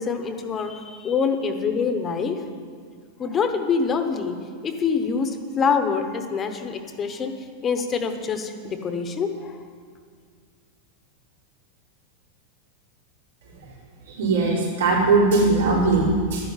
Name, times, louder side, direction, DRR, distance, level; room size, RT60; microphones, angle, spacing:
voice 1, 0.0-2.4 3.2-7.4 7.6-9.6, left 5 dB, 15° left, 6 dB, 0.9 m, -25 dB
voice 2, 14.1-16.5, right 3 dB, 90° right, -3 dB, 4.8 m, -20 dB
12.5 x 11.0 x 8.9 m, 2.1 s
supercardioid pair, 175°, 0 cm